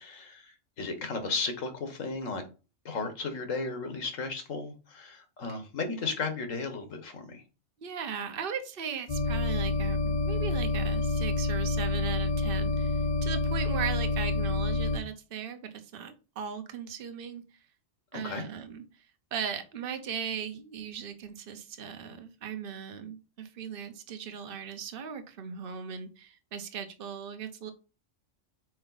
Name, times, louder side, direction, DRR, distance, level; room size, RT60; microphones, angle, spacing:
voice 1, 0.0-2.4 2.8-7.4 18.1-18.4, left 3 dB, 85° left, 1.6 m, -35 dB
voice 2, 7.8-17.4 18.1-18.8 19.3-27.7, right 7 dB, 50° right, 1.0 m, -38 dB
sound 1, 9.1-15.0, left 3 dB, 45° left, 0.7 m, -28 dB
5.3 x 4.6 x 3.9 m
omnidirectional pair, 1.3 m